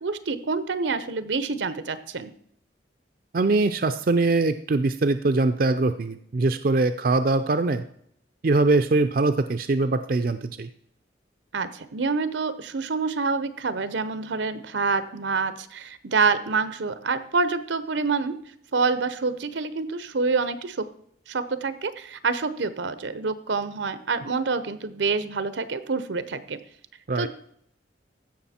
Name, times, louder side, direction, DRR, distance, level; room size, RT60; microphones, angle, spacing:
voice 1, 0.0-2.3 11.5-18.4 18.7-20.8 21.3-26.6 27.2-27.3, right 4 dB, 85° right, 13 dB, 0.8 m, -27 dB
voice 2, 3.3-7.8 8.4-10.7 27.1-27.3, right 3 dB, 50° right, 9 dB, 0.5 m, -22 dB
15.5 x 6.0 x 4.3 m, 0.68 s
head